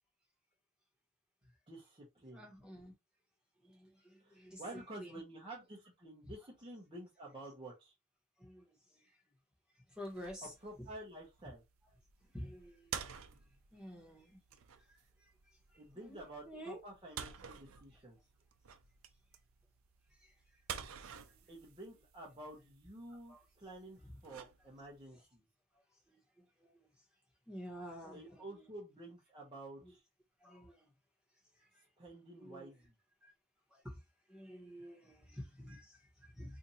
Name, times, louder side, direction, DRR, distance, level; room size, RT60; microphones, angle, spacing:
voice 1, 1.7-2.5 4.2-7.9 10.6-11.6 15.7-18.2 21.5-25.4 28.1-30.0 32.0-32.9, right 1 dB, 25° right, 0.8 m, -50 dB
voice 2, 2.3-2.9 3.6-4.6 5.0-5.2 6.2-6.3 8.4-9.2 9.9-10.5 12.2-13.3 13.7-14.4 14.9-15.3 15.7-16.2 16.5-16.8 20.1-21.0 21.3-21.4 23.3-23.4 25.7-25.8 26.1-26.9 27.5-28.4 29.8-29.9 30.4-30.9 31.5-31.9 32.4-32.7 33.2-33.3 33.7-34.0 34.3-36.6, equal, 5° right, 1.1 m, -51 dB
sound 1, 10.0-25.1, right 7 dB, 90° right, 0.5 m, -51 dB
2.7 x 2.5 x 4.1 m
head